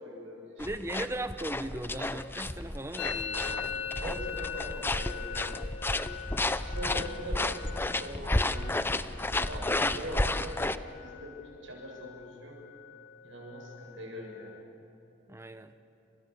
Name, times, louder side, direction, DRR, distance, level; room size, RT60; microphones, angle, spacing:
voice 1, 0.0-0.7 3.4-5.7 6.6-8.8 9.3-10.7 11.0-12.6 13.2-14.5, equal, 75° right, -2 dB, 7.8 m, -42 dB
sound 1, 0.6-10.8, left 2 dB, 10° left, 0.6 m, -32 dB
voice 2, 0.6-3.7 15.3-15.7, right 1 dB, 15° right, 9 dB, 1.0 m, -38 dB
Musical instrument, 3.0-10.6 10.9-11.5 11.7-12.3 12.6-14.6, left 7 dB, 75° left, 1.5 m, -42 dB
29.5 x 27.5 x 7.1 m, 2.9 s
head